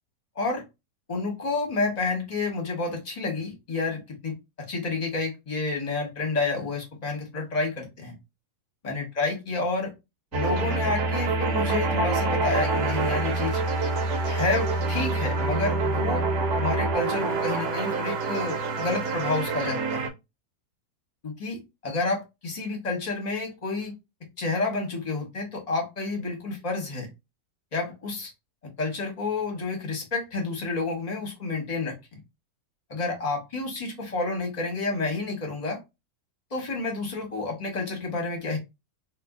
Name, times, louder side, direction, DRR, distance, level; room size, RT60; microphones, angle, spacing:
voice 1, 1.1-8.1 8.8-9.9 10.3-13.6 14.2-16.2 16.6-20.1 21.2-23.9 24.4-27.1 27.7-28.3 28.8-32.0 32.9-35.8 36.5-38.6, left 3 dB, 30° left, 1.0 m, -29 dB
sound 1, 10.3-20.1, right 3 dB, 75° right, 1.2 m, -26 dB
2.7 x 2.7 x 3.6 m
omnidirectional pair, 1.8 m